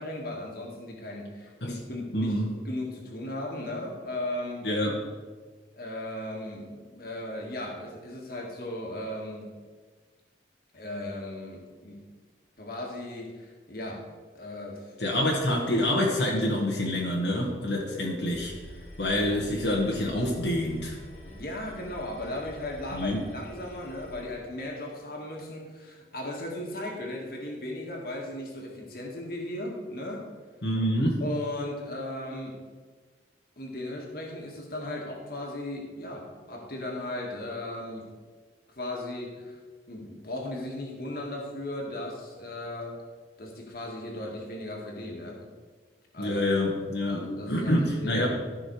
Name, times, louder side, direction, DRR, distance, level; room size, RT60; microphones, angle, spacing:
voice 1, 0.0-4.7 5.7-9.5 10.7-12.0 12.6-14.0 14.4-15.2 21.2-30.2 31.2-32.5 33.6-38.0 38.8-39.6 39.9-43.0 43.4-45.4 46.1-46.4 47.1-48.2, left 1 dB, 55° left, -1 dB, 1.8 m, -36 dB
voice 2, 2.1-2.5 4.6-5.0 15.0-18.5 19.0-20.9 22.9-23.2 30.6-31.2 46.2-48.3, left 1 dB, 75° left, -2 dB, 1.5 m, -27 dB
sound 1, 18.3-24.2, equal, 35° left, 1.8 m, -47 dB
13.5 x 5.6 x 4.8 m, 1.4 s
head